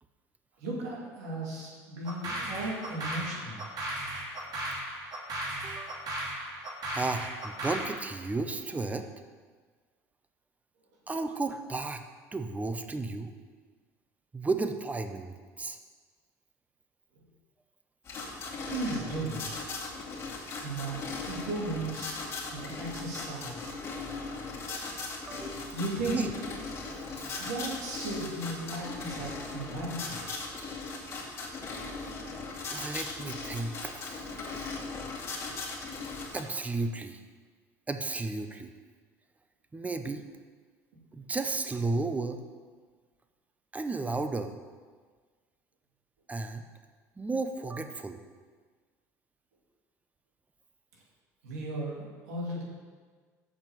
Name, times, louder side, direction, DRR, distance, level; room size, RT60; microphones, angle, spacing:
voice 1, 0.6-3.6 18.7-19.5 20.6-22.2 22.5-23.9 25.7-26.3 27.4-30.2 51.4-52.6, right 2 dB, 80° right, -3 dB, 2.6 m, -36 dB
sound 1, 2.0-8.0, right 1 dB, 50° right, 2.4 m, -36 dB
voice 2, 5.6-6.0 6.9-9.1 11.1-12.0 12.3-13.3 14.3-15.8 25.3-25.7 26.1-26.3 27.2-27.5 32.7-34.2 36.3-37.2 37.9-38.7 39.7-40.2 41.1-42.4 43.7-44.5 46.3-46.7 47.2-48.2, right 3 dB, 20° right, 7 dB, 0.8 m, -33 dB
sound 2, 18.0-36.4, left 3 dB, 35° left, 2.5 m, -38 dB
6.9 x 5.7 x 7.3 m, 1.5 s
hypercardioid pair, 80°, 8 cm